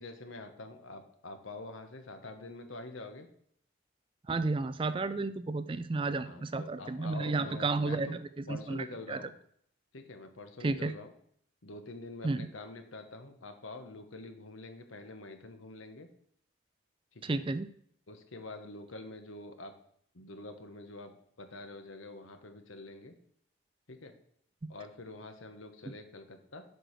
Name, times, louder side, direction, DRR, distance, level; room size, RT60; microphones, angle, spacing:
voice 1, 0.0-3.3 6.2-8.2 8.5-9.3 9.9-11.1 11.6-16.1 17.1-17.4 18.1-19.7 20.1-21.1 21.4-23.1 23.9-24.1 24.7-26.6, left 2 dB, 85° left, 7 dB, 1.2 m, -46 dB
voice 2, 4.3-9.2 10.6-10.9 12.2-12.5 17.2-17.7 25.9-26.0, right 3 dB, 25° right, 13 dB, 0.3 m, -32 dB
7.8 x 4.7 x 6.6 m, 0.66 s
head